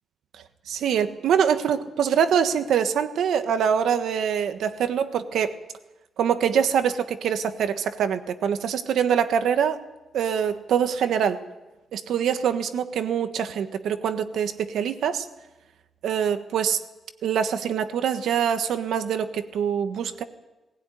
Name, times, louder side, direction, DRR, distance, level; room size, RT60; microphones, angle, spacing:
voice 1, 0.7-5.6 6.2-9.8 10.1-11.4 11.9-15.3 16.0-16.8 17.2-20.2, right 8 dB, 85° right, 9 dB, 1.3 m, -24 dB
20.0 x 16.5 x 9.3 m, 1.1 s
wide cardioid pair, 175°, 0 cm